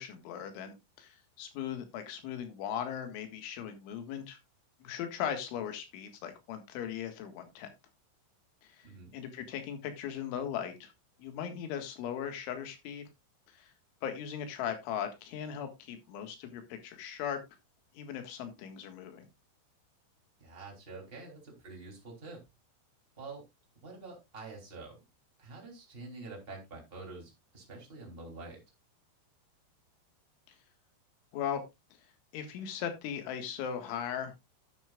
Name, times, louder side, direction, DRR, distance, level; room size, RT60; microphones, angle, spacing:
voice 1, 0.0-4.4 4.8-7.7 8.6-8.9 9.1-10.9 11.2-13.1 13.5-13.7 14.0-17.4 17.9-19.3 30.5-30.6 31.3-31.6 32.3-34.3, left 8 dB, 80° left, 7 dB, 4.1 m, -38 dB
voice 2, 20.4-22.4 23.2-23.4 23.8-25.0 25.4-28.6, right 3 dB, 15° right, 0 dB, 2.8 m, -47 dB
10.5 x 10.5 x 2.4 m, 0.22 s
omnidirectional pair, 5.5 m